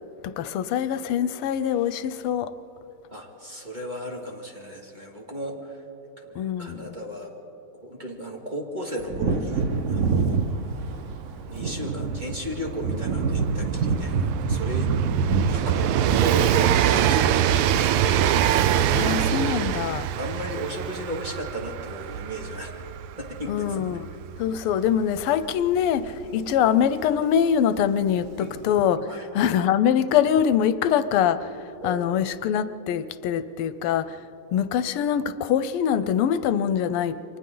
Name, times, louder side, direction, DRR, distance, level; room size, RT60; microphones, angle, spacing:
voice 1, 0.2-2.5 6.3-6.9 18.9-20.1 23.5-24.1 24.4-34.3 34.5-37.4, left 9 dB, 85° left, 13 dB, 1.6 m, -24 dB
voice 2, 3.1-5.8 6.2-7.3 7.8-10.4 11.4-14.9 15.5-18.7 20.2-22.8 23.2-24.0 26.2-26.5 28.4-28.5 29.1-29.3 31.8-32.2, right 1 dB, 20° right, -1 dB, 2.1 m, -35 dB
Wind / Thunder, 9.0-17.2 17.5-17.6, right 4 dB, 55° right, 0.8 m, -27 dB
Train, 9.9-10.0 10.2-26.8 27.8-27.9, right 10 dB, 85° right, 1.6 m, -25 dB
29.5 x 24.5 x 3.9 m, 2.9 s
omnidirectional pair, 2.4 m